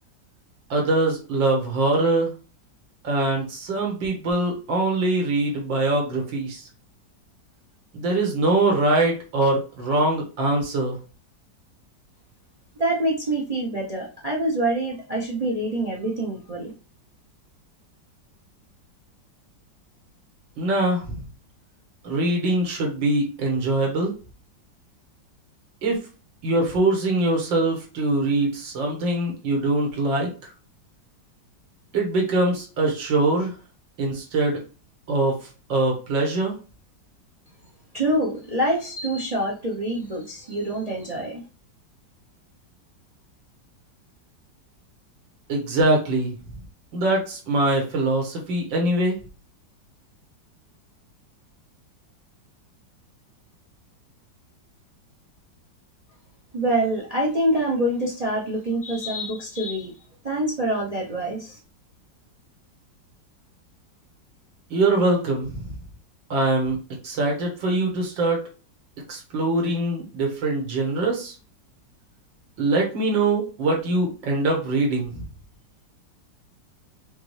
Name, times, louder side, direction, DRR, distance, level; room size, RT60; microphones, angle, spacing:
voice 1, 0.7-2.3 3.0-6.6 7.9-11.0 20.6-21.2 22.0-24.1 25.8-26.0 26.4-30.3 31.9-33.5 34.0-34.6 35.1-35.4 35.7-36.6 45.5-46.3 46.9-49.2 64.7-65.7 66.3-66.8 67.0-68.4 69.1-71.3 72.6-75.2, right 2 dB, 90° right, 0 dB, 2.1 m, -23 dB
voice 2, 12.8-16.7 37.9-41.4 56.5-59.9 60.2-61.6, right 1 dB, 40° right, -2 dB, 0.5 m, -25 dB
5.7 x 2.4 x 3.2 m, 0.35 s
omnidirectional pair, 2.0 m